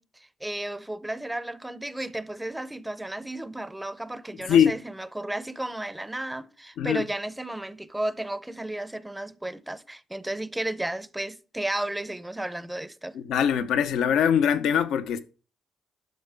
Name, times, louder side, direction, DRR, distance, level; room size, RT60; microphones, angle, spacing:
voice 1, 0.0-13.2, right 1 dB, 10° right, 0.6 m, -33 dB
voice 2, 13.1-15.2, left 8 dB, 80° left, 0.7 m, -22 dB
10.5 x 6.5 x 3.4 m
cardioid pair, 90°, 0 cm